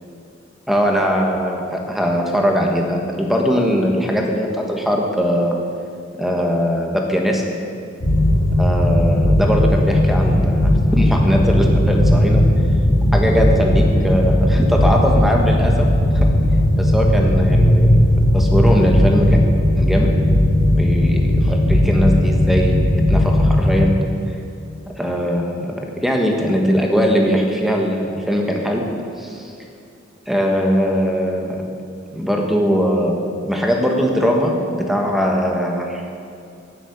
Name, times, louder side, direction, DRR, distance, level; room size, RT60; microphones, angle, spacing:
voice 1, 0.7-5.6 6.2-7.4 8.6-12.4 13.1-15.9 16.1-16.3 16.8-18.0 18.3-19.3 19.8-20.1 20.7-23.9 24.9-28.8 29.2-29.5 30.3-31.7 32.1-36.1, equal, ahead, 0 dB, 1.4 m, -20 dB
sound 1, 8.0-23.9, left 1 dB, 75° left, 1.8 m, -16 dB
10.5 x 7.5 x 8.4 m, 2.5 s
head